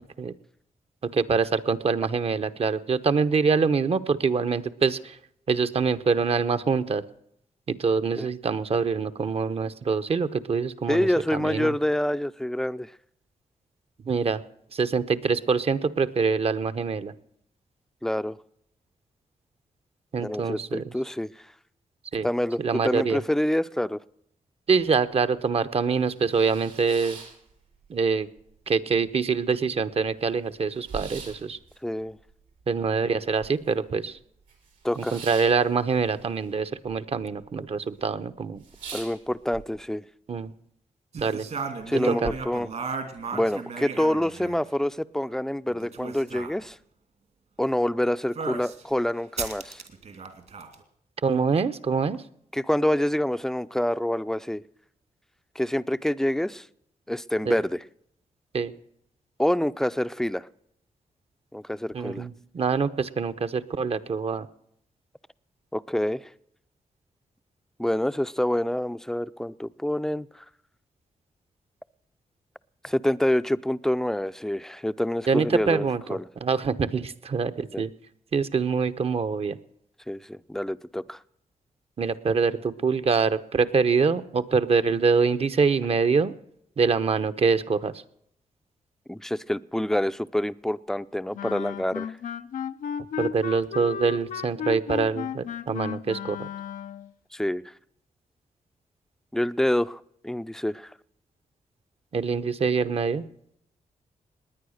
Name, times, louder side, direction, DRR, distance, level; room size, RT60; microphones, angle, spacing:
voice 1, 1.0-5.2 5.5-7.0 7.7-11.7 14.1-14.4 14.7-17.1 20.1-20.8 22.1-22.3 22.6-23.2 24.7-27.2 27.9-28.3 28.7-31.6 32.7-34.2 35.0-38.6 40.3-40.5 41.1-41.5 42.1-42.2 51.2-52.2 57.4-57.6 58.5-58.7 61.9-64.5 75.3-77.9 78.3-79.6 82.0-86.3 86.8-87.9 93.2-96.5 102.1-103.2, right 5 dB, 50° right, 0.9 m, -25 dB
voice 2, 10.9-12.9 18.0-18.4 20.2-21.3 22.2-24.0 31.8-32.2 34.8-35.2 38.9-40.0 41.9-42.7 43.3-46.8 47.6-49.8 52.5-54.6 55.6-56.7 57.1-57.8 59.4-60.5 61.5-62.3 65.7-66.3 67.8-70.4 72.8-76.3 77.7-77.8 80.1-81.2 89.1-92.2 97.3-97.6 99.3-100.9, left 1 dB, 5° left, 0.5 m, -27 dB
sound 1, 26.1-28.1 28.4-29.1 29.5-29.6 29.7-33.9 34.2-37.0 37.2-37.8 38.1-38.2 38.5-39.6, right 5 dB, 90° right, 4.7 m, -44 dB
sound 2, 41.1-44.7 45.7-46.5 48.3-48.8 49.4-50.8, right 5 dB, 65° right, 2.7 m, -35 dB
Wind instrument woodwind instrument, 91.3-97.1, left 8 dB, 85° left, 0.6 m, -34 dB
20.0 x 9.4 x 6.5 m
cardioid pair, 85°, 13 cm